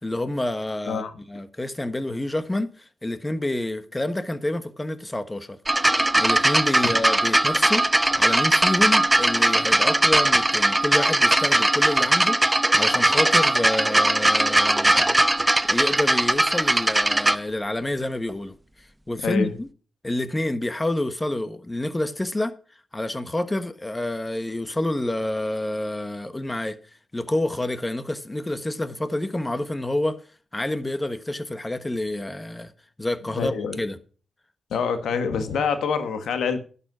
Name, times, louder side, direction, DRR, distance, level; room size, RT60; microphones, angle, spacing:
voice 1, 0.0-1.0 1.3-5.6 6.2-7.9 8.2-15.2 15.6-19.7 20.0-22.5 22.9-26.8 27.1-30.2 30.5-32.7 33.0-34.0, left 1 dB, 20° left, 1.3 m, -28 dB
sound 1, 5.7-17.3 18.3-18.4, right 1 dB, 15° right, 0.8 m, -20 dB
voice 2, 33.3-33.8 34.7-36.6, left 6 dB, 85° left, 1.6 m, -26 dB
11.0 x 7.0 x 6.0 m
cardioid pair, 70°, 0 cm